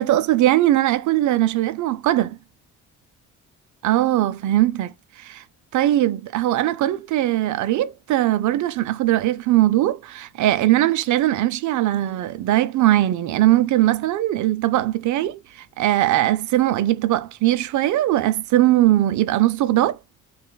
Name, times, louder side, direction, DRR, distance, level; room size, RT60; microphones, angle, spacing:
voice 1, 0.0-2.4 3.8-4.9 5.2-5.4 5.7-15.4 15.8-20.0, right 14 dB, 75° right, 0.6 m, -20 dB
5.4 x 2.4 x 2.2 m
cardioid pair, 90°, 30 cm